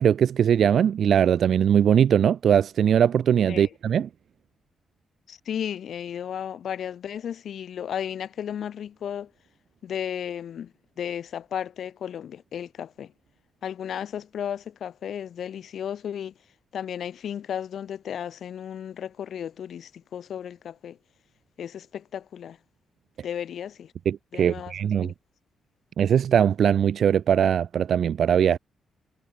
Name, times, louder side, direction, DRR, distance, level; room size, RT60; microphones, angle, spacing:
voice 1, 0.0-4.1 24.1-25.1 26.0-28.6, right 8 dB, 60° right, 0.7 m, -21 dB
voice 2, 3.5-4.0 5.3-9.3 9.8-13.1 13.6-16.3 16.7-21.0 21.6-22.6 23.2-23.9 24.3-24.7 25.0-25.1, left 9 dB, 65° left, 6.8 m, -34 dB
cardioid pair, 115°, 0 cm